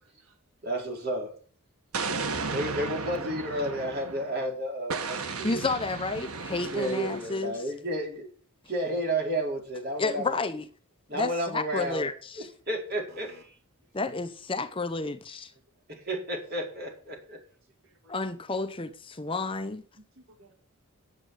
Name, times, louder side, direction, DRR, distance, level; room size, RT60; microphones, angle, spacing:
voice 1, 0.0-0.3 13.1-13.4 15.5-15.6 17.8-18.1 20.2-20.5, equal, 65° right, 1.9 m, -57 dB
voice 2, 0.6-1.3 2.5-5.6 6.7-8.3 8.7-10.4 11.1-12.0 12.4-13.5 15.9-17.4, right 1 dB, 45° right, 4.6 m, -32 dB
Explosion, 1.9-4.4 4.9-7.5, right 4 dB, 85° right, 1.6 m, -34 dB
voice 3, 5.4-7.6 10.0-10.7 11.1-12.5 13.9-15.5 18.1-19.8, left 3 dB, 25° left, 0.7 m, -31 dB
10.0 x 7.4 x 8.1 m
head